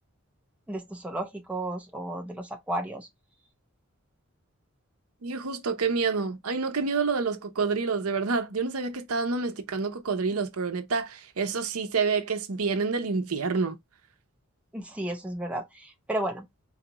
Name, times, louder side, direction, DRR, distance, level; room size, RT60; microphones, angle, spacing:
voice 1, 0.7-3.1 14.7-16.5, right 1 dB, 5° right, 0.7 m, -33 dB
voice 2, 5.2-13.8, right 4 dB, 85° right, 0.7 m, -28 dB
4.1 x 2.4 x 2.9 m
head